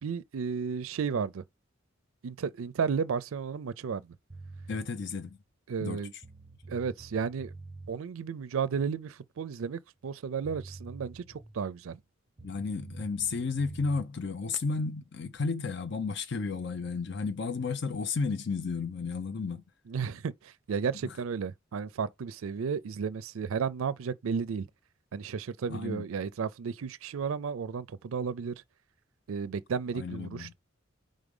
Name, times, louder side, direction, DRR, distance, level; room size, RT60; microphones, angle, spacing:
voice 1, 0.0-1.4 2.2-4.0 5.7-6.1 6.7-7.5 7.9-12.0 19.9-24.7 25.1-28.6 29.3-30.5, right 6 dB, 80° right, 0.4 m, -33 dB
sound 1, 4.3-4.9 5.9-6.0 6.2-7.9 10.1-10.2 10.4-11.6 12.4-14.1, right 3 dB, 20° right, 0.7 m, -47 dB
voice 2, 4.7-5.4 5.8-6.0 12.4-19.6 21.0-21.2 25.7-26.0 29.9-30.5, left 4 dB, 55° left, 0.5 m, -33 dB
4.9 x 3.8 x 5.3 m
head